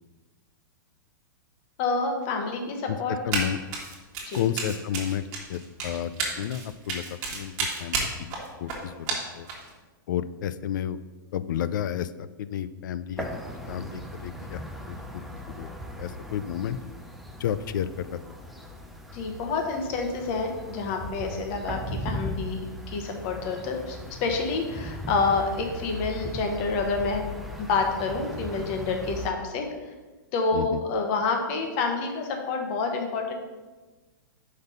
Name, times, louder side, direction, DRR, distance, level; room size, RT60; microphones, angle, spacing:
voice 1, 1.8-3.1 4.3-4.4 19.1-27.3 27.6-29.6 30.3-33.3, left 4 dB, 40° left, 3 dB, 1.0 m, -28 dB
voice 2, 2.9-3.6 4.3-5.2 5.5-7.5 7.8-8.3 8.6-9.5 10.1-11.0 11.3-13.3 13.7-14.6 14.9-15.2 15.6-15.7 16.0-16.8 17.4-18.2 30.5-30.8, left 10 dB, 65° left, 14 dB, 0.4 m, -31 dB
Run, 3.3-3.5 3.7-9.7, right 4 dB, 35° right, 1.5 m, -31 dB
sound 1, 13.2-29.3, equal, ahead, 0.4 m, -38 dB
5.3 x 4.0 x 5.3 m, 1.3 s
hypercardioid pair, 150°, 11 cm